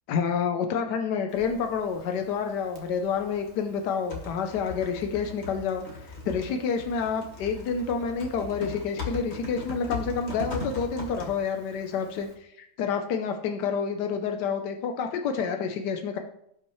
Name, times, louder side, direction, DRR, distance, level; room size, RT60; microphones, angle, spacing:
voice 1, 0.1-16.2, left 6 dB, 85° left, 5 dB, 1.4 m, -29 dB
Typing, 1.3-12.3, left 2 dB, 40° left, 1.8 m, -40 dB
16.5 x 5.7 x 3.1 m, 0.74 s
omnidirectional pair, 1.8 m